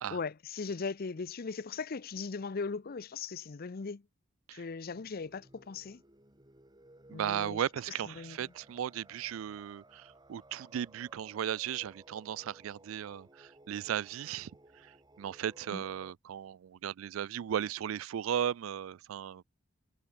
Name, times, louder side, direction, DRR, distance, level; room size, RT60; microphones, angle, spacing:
voice 1, 0.1-4.0 4.5-6.0 7.1-7.6 8.2-8.5 15.7-15.8, left 4 dB, 50° left, 0.6 m, -38 dB
sound 1, 4.8-16.1, right 1 dB, 20° right, 3.4 m, -59 dB
voice 2, 7.1-14.5 14.8-19.4, right 9 dB, 90° right, 0.3 m, -36 dB
head